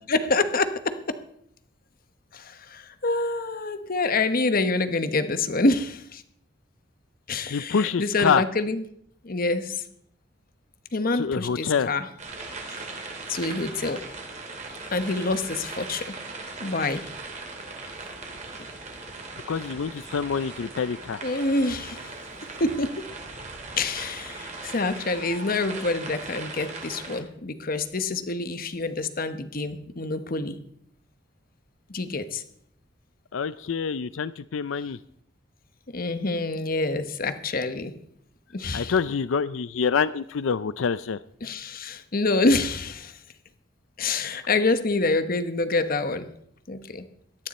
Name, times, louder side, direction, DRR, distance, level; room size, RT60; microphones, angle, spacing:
voice 1, 0.1-1.2 2.3-6.2 7.3-8.8 9.2-9.7 10.9-12.1 12.7-12.8 13.3-14.0 14.9-16.2 16.6-17.1 21.2-22.1 22.6-23.0 23.7-30.6 31.9-32.4 35.9-37.9 38.5-38.9 41.4-43.1 44.0-46.3 46.7-47.0, left 3 dB, 45° left, 10 dB, 1.1 m, -26 dB
voice 2, 7.5-8.4 11.1-11.9 19.5-21.2 33.3-35.0 38.7-41.2, left 6 dB, 85° left, 15 dB, 0.5 m, -26 dB
sound 1, 12.2-27.2, right 3 dB, 40° right, 3.0 m, -39 dB
18.0 x 12.5 x 4.3 m, 0.71 s
head